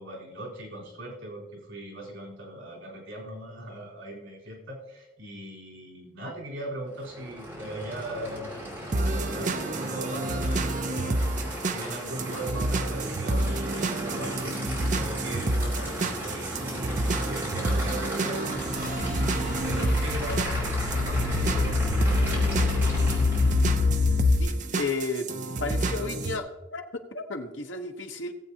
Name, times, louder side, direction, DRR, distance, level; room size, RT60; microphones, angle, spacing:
voice 1, 0.0-10.7 11.0-11.2 11.7-19.0 19.6-21.8 22.1-23.0, right 1 dB, 80° right, -3 dB, 3.9 m, -39 dB
Aircraft / Idling, 6.9-23.8, equal, 10° right, 3.7 m, -37 dB
sound 1, 8.9-26.4, right 2 dB, 40° right, 0.6 m, -29 dB
sound 2, 18.5-24.4, left 4 dB, 60° left, 0.6 m, -26 dB
voice 2, 24.3-25.3 25.6-28.3, left 3 dB, 75° left, 5 dB, 1.0 m, -33 dB
18.0 x 8.1 x 2.9 m, 1.0 s
head